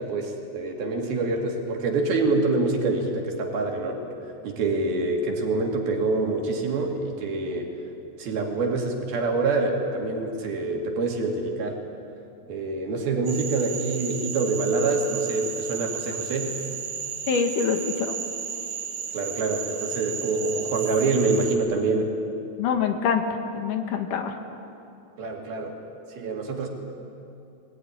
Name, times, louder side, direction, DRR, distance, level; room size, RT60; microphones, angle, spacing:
voice 1, 0.0-4.0 4.4-7.7 8.2-11.8 12.5-16.5 19.1-22.1 25.2-25.8 26.1-26.7, right 3 dB, 80° right, 1 dB, 4.3 m, -26 dB
Frog, 13.3-21.6, right 7 dB, 50° right, 3.9 m, -33 dB
voice 2, 17.3-18.1 22.6-23.2 23.5-24.4, left 6 dB, 65° left, 5 dB, 2.6 m, -25 dB
21.5 x 18.0 x 9.9 m, 2.7 s
omnidirectional pair, 4.2 m